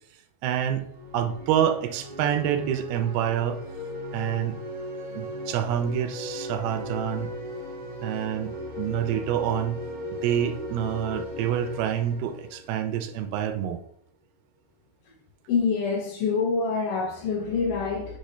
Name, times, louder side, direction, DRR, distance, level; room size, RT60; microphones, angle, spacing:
voice 1, 0.4-0.9 1.1-3.6 4.1-4.6 5.1-7.3 8.0-9.8 10.1-13.8, right 10 dB, 80° right, 2.5 m, -27 dB
sound 1, 0.8-13.5, left 1 dB, 45° right, 1.0 m, -37 dB
voice 2, 15.5-18.2, left 5 dB, 70° left, 2.2 m, -26 dB
6.4 x 3.5 x 5.4 m
omnidirectional pair, 4.6 m